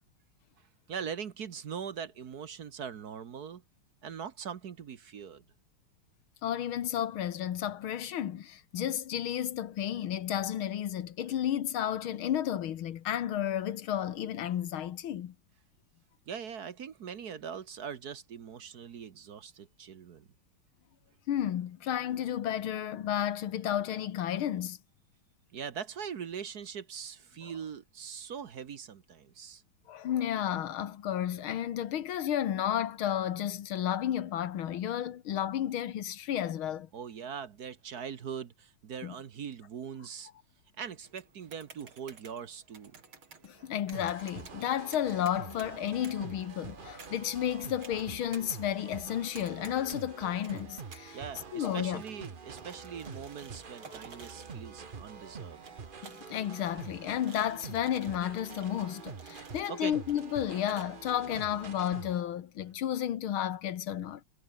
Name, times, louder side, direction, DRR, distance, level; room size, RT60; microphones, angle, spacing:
voice 1, 0.9-3.6 4.0-5.4 16.3-20.3 25.5-29.6 36.9-40.3 40.8-42.9 51.1-55.6 59.7-60.0 61.2-61.4, right 7 dB, 55° right, 1.5 m, -41 dB
voice 2, 6.4-15.3 21.3-24.8 29.9-36.9 39.0-39.1 43.4-51.2 51.5-52.0 53.8-54.0 56.0-64.2, left 10 dB, 85° left, 2.0 m, -32 dB
sound 1, 41.0-60.8, right 5 dB, 80° right, 4.0 m, -55 dB
sound 2, 43.9-62.2, right 5 dB, 30° right, 1.1 m, -46 dB
omnidirectional pair, 2.2 m